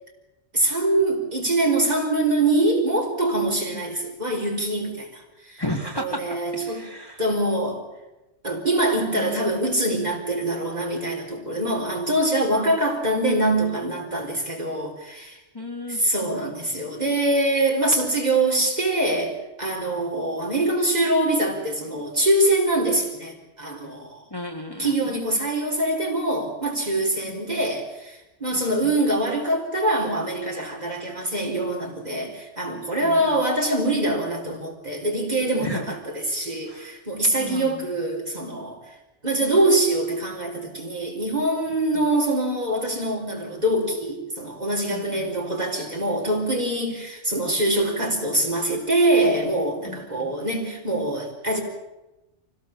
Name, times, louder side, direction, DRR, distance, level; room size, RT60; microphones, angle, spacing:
voice 1, 0.5-5.6 6.0-6.9 7.2-7.8 8.4-15.4 15.9-24.2 24.8-38.8 39.2-51.6, right 1 dB, 35° right, 0 dB, 4.3 m, -24 dB
voice 2, 5.6-6.2 6.6-7.2 9.2-9.5 15.5-16.0 24.3-24.9 27.3-27.4 28.5-28.9 33.0-33.4 35.6-36.0 36.7-36.9 37.4-37.8 44.9-45.3 49.8-50.3, left 1 dB, 20° left, 1 dB, 1.8 m, -34 dB
24.5 x 18.0 x 7.2 m, 1.0 s
omnidirectional pair, 1.2 m